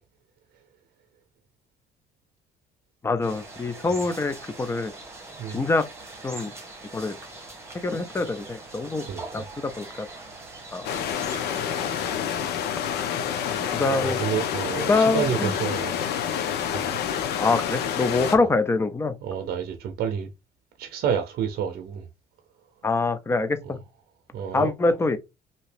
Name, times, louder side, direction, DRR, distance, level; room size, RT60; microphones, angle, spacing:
voice 1, 3.0-4.9 5.5-5.9 6.2-6.5 6.9-7.1 7.8-9.0 9.3-9.8 10.7-10.9 13.8-14.2 14.9-15.5 17.4-19.2 22.8-23.8 24.5-25.2, left 3 dB, 15° left, 0.4 m, -24 dB
sound 1, 3.2-12.2, right 2 dB, 15° right, 1.3 m, -42 dB
sound 2, 10.8-18.4, left 8 dB, 75° left, 0.6 m, -28 dB
voice 2, 14.0-15.9 16.6-17.0 18.3-18.5 19.2-20.3 20.8-22.1 24.3-24.7, right 8 dB, 65° right, 0.6 m, -29 dB
2.8 x 2.7 x 3.3 m
cardioid pair, 110°, 17 cm